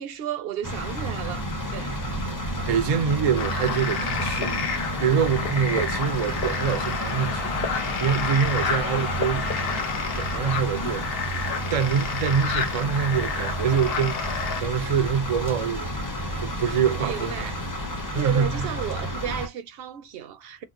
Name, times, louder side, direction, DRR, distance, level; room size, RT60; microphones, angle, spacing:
voice 1, 0.0-2.0 17.0-17.6 18.1-20.6, right 9 dB, 70° right, 0.8 m, -33 dB
sound 1, 0.6-19.5, equal, 20° left, 0.7 m, -31 dB
voice 2, 2.7-4.7 5.0-15.9 16.4-17.5 18.1-18.7, right 7 dB, 50° right, 0.4 m, -26 dB
sound 2, 3.4-14.6, left 5 dB, 70° left, 0.9 m, -30 dB
3.0 x 2.1 x 3.6 m
omnidirectional pair, 1.0 m